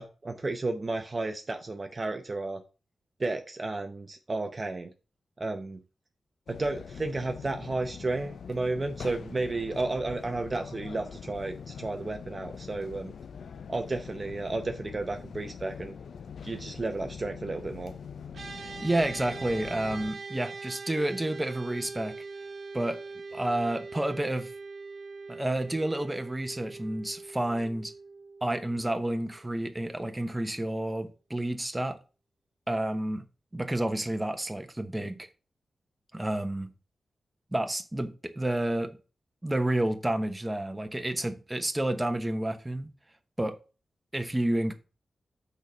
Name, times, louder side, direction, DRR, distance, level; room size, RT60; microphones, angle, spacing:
voice 1, 0.0-2.6 3.2-4.9 5.4-5.8 6.5-13.1 13.7-15.9 16.4-17.9, right 2 dB, 35° right, 0.7 m, -32 dB
sound 1, 6.5-20.1, left 6 dB, 80° left, 0.5 m, -43 dB
sound 2, 18.3-29.8, right 4 dB, 60° right, 1.2 m, -42 dB
voice 2, 18.6-22.2 22.7-23.0 23.3-24.5 25.3-27.9 28.4-32.0 32.7-33.2 33.5-35.3 36.1-36.7 37.5-39.0 39.4-42.9 43.4-43.5 44.1-44.7, right 1 dB, 10° right, 0.9 m, -30 dB
6.4 x 4.1 x 6.1 m
wide cardioid pair, 110°, 0 cm